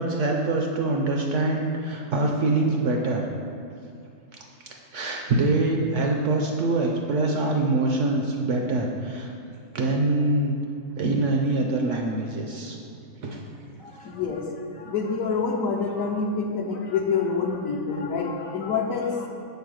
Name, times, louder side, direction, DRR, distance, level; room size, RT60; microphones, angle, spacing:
voice 1, 0.0-3.2 4.6-9.3 9.7-10.6 11.0-12.8 13.2-13.4, right 2 dB, 65° right, 1 dB, 0.8 m, -24 dB
voice 2, 13.8-19.3, left 5 dB, 65° left, 1 dB, 1.0 m, -27 dB
5.6 x 4.2 x 6.2 m, 2.5 s
omnidirectional pair, 1.6 m